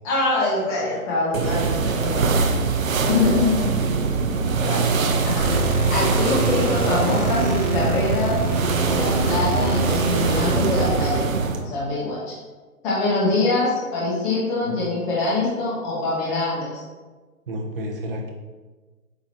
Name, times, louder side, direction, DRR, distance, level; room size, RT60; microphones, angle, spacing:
voice 1, 0.0-2.3 3.0-3.8 4.2-4.9 5.2-5.5 5.9-8.4 8.9-11.2 11.6-12.3 12.8-16.8, left 2 dB, 5° left, -7 dB, 0.7 m, -24 dB
sound 1, 1.3-11.6, right 4 dB, 65° right, 0.8 m, -23 dB
sound 2, 5.4-11.1, right 2 dB, 85° right, 1.2 m, -25 dB
voice 2, 17.5-18.3, equal, 40° right, 0 dB, 1.0 m, -30 dB
8.3 x 2.8 x 4.5 m, 1.3 s
hypercardioid pair, 155°, 44 cm